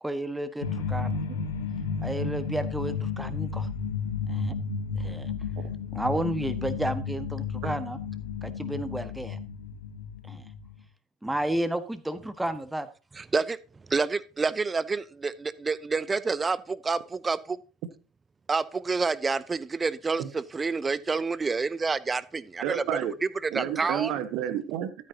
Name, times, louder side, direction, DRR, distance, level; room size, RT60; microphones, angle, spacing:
voice 1, 0.0-1.2 2.0-3.7 4.3-4.6 5.0-5.3 5.9-8.0 8.4-9.4 10.3-10.5 11.2-12.9 23.8-23.9, right 1 dB, 10° right, 1.4 m, -32 dB
sound 1, 0.6-10.8, left 5 dB, 80° left, 1.3 m, -32 dB
voice 2, 13.2-13.6 13.9-17.6 18.5-23.1 23.4-24.1, right 4 dB, 25° right, 0.7 m, -28 dB
voice 3, 22.6-23.1 23.5-25.1, right 10 dB, 60° right, 1.2 m, -30 dB
13.0 x 9.1 x 2.8 m
figure-of-eight pair, 65°, 0 cm